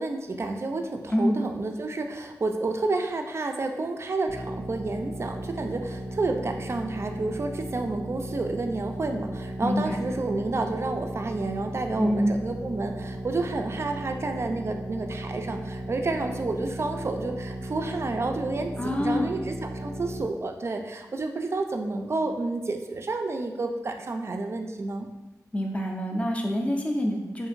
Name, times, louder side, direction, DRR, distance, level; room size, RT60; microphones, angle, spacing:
voice 1, 0.0-25.1, right 3 dB, 40° right, 4 dB, 0.3 m, -30 dB
sound 1, 4.3-20.2, right 1 dB, 20° right, 0.7 m, -36 dB
voice 2, 9.6-10.0 12.0-12.4 18.8-19.3 25.5-27.5, equal, 20° left, 1 dB, 0.5 m, -26 dB
2.8 x 2.5 x 2.5 m, 1.1 s
cardioid pair, 45°, 7 cm